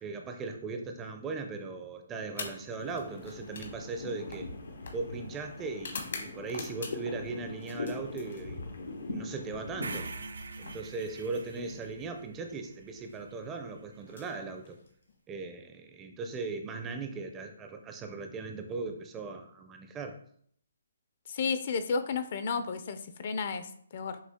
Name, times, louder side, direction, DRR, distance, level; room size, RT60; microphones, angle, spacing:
voice 1, 0.0-4.5 4.9-8.6 9.1-10.1 10.6-14.8 15.3-20.2, right 4 dB, 15° right, 5 dB, 0.4 m, -38 dB
sound 1, 2.3-7.2 7.6-8.8 10.0-11.9 12.9-13.2 14.0-15.2, left 4 dB, 65° left, 1.1 m, -46 dB
sound 2, 2.8-10.1, left 3 dB, 85° left, 0.9 m, -41 dB
sound 3, 9.8-14.0, right 3 dB, 85° right, 0.5 m, -44 dB
voice 2, 21.3-24.2, left 5 dB, 45° left, 10 dB, 0.5 m, -32 dB
6.3 x 2.4 x 3.6 m, 0.63 s
hypercardioid pair, 160°, 0 cm